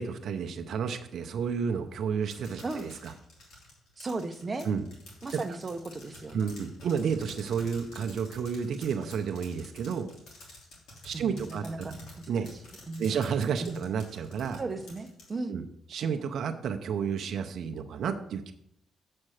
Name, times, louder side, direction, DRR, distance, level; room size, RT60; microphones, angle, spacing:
voice 1, 0.0-3.1 4.6-4.8 6.3-10.1 11.0-11.9 12.3-12.5 13.0-14.6 15.5-15.6 15.9-18.5, right 6 dB, 65° right, 6 dB, 0.6 m, -31 dB
sound 1, 2.3-15.3, left 1 dB, 75° left, 3.0 m, -49 dB
voice 2, 4.0-4.7 5.2-6.5 11.1-12.0 12.9-13.2 13.6-13.8 14.6-15.6, right 3 dB, 30° right, 7 dB, 0.7 m, -36 dB
7.6 x 4.3 x 6.4 m, 0.75 s
cardioid pair, 90°, 0 cm